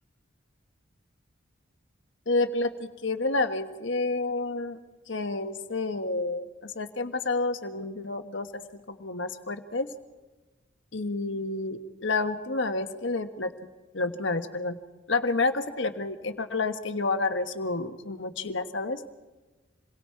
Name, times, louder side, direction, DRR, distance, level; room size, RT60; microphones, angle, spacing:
voice 1, 2.3-2.7 3.0-4.8 5.1-8.5 8.9-9.9 10.9-13.5 13.9-14.8 15.1-19.0, left 3 dB, 70° left, 8 dB, 1.4 m, -29 dB
28.5 x 22.5 x 4.7 m, 1.2 s
head